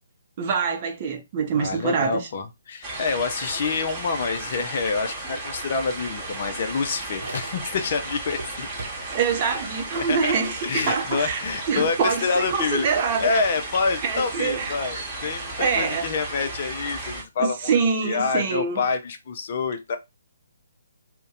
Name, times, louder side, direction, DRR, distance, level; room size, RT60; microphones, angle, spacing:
voice 1, 0.4-2.2 9.1-11.4 11.7-13.4 14.0-14.8 15.6-16.1 17.4-18.8, right 5 dB, 35° right, 0.6 m, -25 dB
voice 2, 1.6-8.7 9.9-10.3 10.6-12.9 13.2-20.0, left 4 dB, 40° left, 0.5 m, -27 dB
sound 1, 2.8-17.2, right 2 dB, 15° right, 1.1 m, -34 dB
sound 2, 6.0-7.9 8.2-9.3, right 2 dB, 65° right, 0.8 m, -41 dB
2.5 x 2.1 x 3.9 m
figure-of-eight pair, 135°, 0 cm